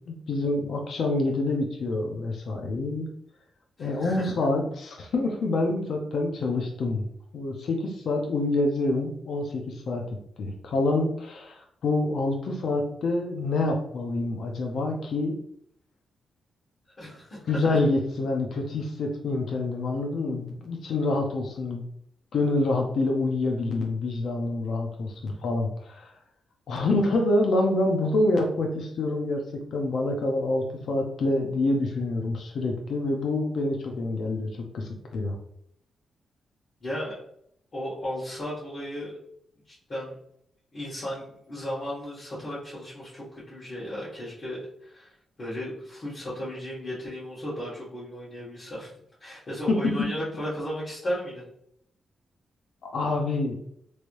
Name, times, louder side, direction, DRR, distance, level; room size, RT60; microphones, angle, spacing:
voice 1, 0.1-3.1 3.8-7.1 7.3-10.0 10.4-15.3 17.5-21.8 22.3-26.1 26.7-34.5 34.7-35.4 49.7-49.8 52.8-53.7, left 2 dB, 65° left, 2 dB, 0.6 m, -27 dB
voice 2, 3.8-4.4 17.0-17.8 36.8-37.1 37.7-39.1 39.7-40.1 40.7-45.1 45.4-48.9 49.2-51.4, equal, 40° left, -11 dB, 1.5 m, -35 dB
3.2 x 3.1 x 2.6 m, 0.70 s
cardioid pair, 130°, 0 cm